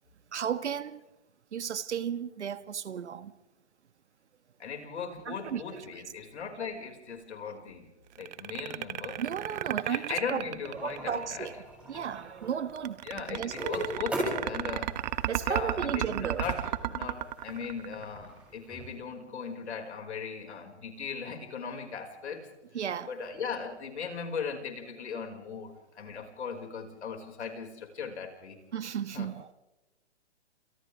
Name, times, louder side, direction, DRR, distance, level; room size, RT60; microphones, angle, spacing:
voice 1, 0.3-1.0 1.5-3.3 5.2-6.0 9.2-10.4 10.8-11.5 11.9-13.8 15.2-16.4 22.7-23.1 28.7-29.5, right 8 dB, 75° right, 1.5 m, -34 dB
voice 2, 4.6-7.9 8.2-9.2 9.9-11.5 13.0-15.0 15.4-22.5 23.1-28.6 29.1-29.3, left 6 dB, 70° left, 5.6 m, -38 dB
sound 1, 8.2-11.3 12.8-18.3, right 13 dB, 40° right, 1.1 m, -33 dB
sound 2, 10.6-19.0, equal, 5° right, 7.5 m, -40 dB
29.0 x 28.5 x 3.5 m
hypercardioid pair, 150°, 34 cm